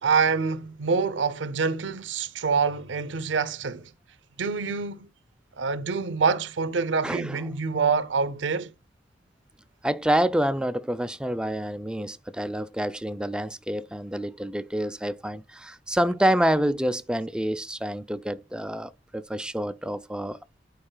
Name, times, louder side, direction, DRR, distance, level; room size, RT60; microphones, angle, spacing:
voice 1, 0.0-3.9 4.4-5.1 5.6-8.7, right 5 dB, 80° right, 0.6 m, -26 dB
voice 2, 7.0-7.4 9.8-20.4, right 1 dB, 5° right, 0.4 m, -27 dB
11.0 x 4.7 x 2.2 m
head